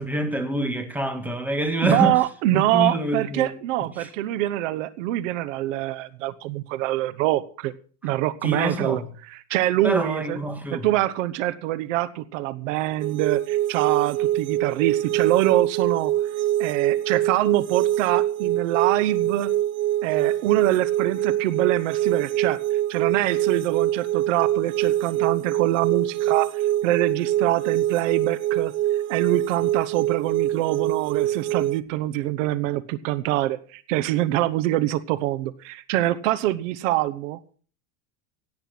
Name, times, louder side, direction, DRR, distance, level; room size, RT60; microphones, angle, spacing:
voice 1, 0.0-2.2 2.5-3.6 4.0-4.1 8.4-9.1 9.8-10.9, right 1 dB, 5° right, 1.7 m, -26 dB
voice 2, 1.8-7.7 8.0-9.0 9.3-10.4 10.7-16.1 16.6-19.5 20.0-22.6 22.9-28.7 29.1-37.5, right 15 dB, 80° right, 1.0 m, -25 dB
sound 1, 13.0-31.8, right 13 dB, 30° right, 0.6 m, -24 dB
17.0 x 8.8 x 5.9 m
supercardioid pair, 160°, 38 cm